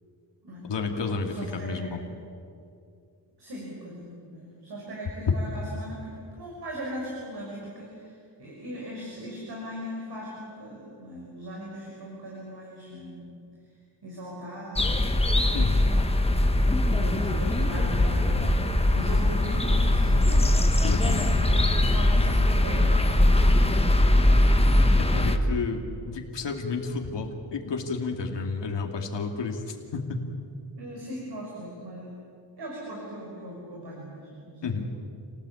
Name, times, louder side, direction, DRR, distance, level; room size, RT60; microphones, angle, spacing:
voice 1, 0.7-2.0 15.5-15.9 20.8-21.2 25.0-30.2 34.6-34.8, left 4 dB, 75° left, 2 dB, 2.7 m, -31 dB
voice 2, 1.3-2.1 3.4-13.3 14.0-15.0 15.4-15.8 16.8-20.5 21.0-24.0 25.9-26.0 30.8-32.1 32.6-34.8, equal, 65° right, -3 dB, 6.1 m, -39 dB
sound 1, 14.8-25.4, left 1 dB, 15° left, 1.7 m, -21 dB
28.5 x 18.5 x 8.6 m, 2.5 s
wide cardioid pair, 120°, 43 cm